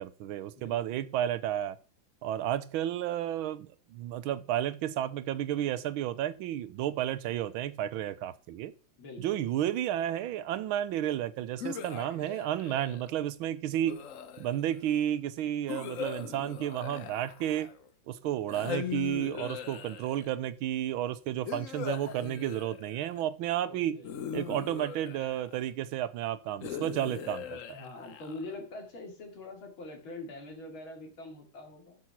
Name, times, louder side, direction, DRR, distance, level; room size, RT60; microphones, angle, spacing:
voice 1, 0.0-1.8 2.2-8.7 9.2-14.0 14.4-17.7 18.1-24.0 24.3-27.6, right 11 dB, 85° right, 1.5 m, -32 dB
voice 2, 0.6-1.0 9.0-9.5 23.6-24.1 27.7-32.0, left 2 dB, 75° left, 3.5 m, -44 dB
sound 1, 11.6-13.1 13.8-14.8 15.7-17.9 18.5-20.3 21.5-23.2 24.0-25.7 26.6-28.6, left 8 dB, 55° left, 0.9 m, -40 dB
11.0 x 6.2 x 5.8 m
omnidirectional pair, 2.2 m